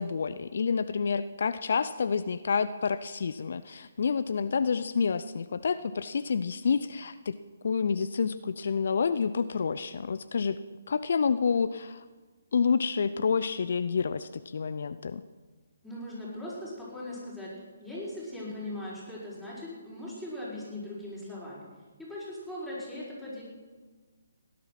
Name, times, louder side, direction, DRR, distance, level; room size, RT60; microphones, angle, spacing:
voice 1, 0.0-7.4 7.6-10.6 10.9-12.0 12.5-15.2, left 5 dB, 60° left, 13 dB, 0.5 m, -28 dB
voice 2, 15.8-17.5 17.8-21.7 22.0-23.4, left 1 dB, ahead, -9 dB, 5.9 m, -39 dB
17.0 x 11.0 x 5.9 m, 1.4 s
figure-of-eight pair, 140°, 0 cm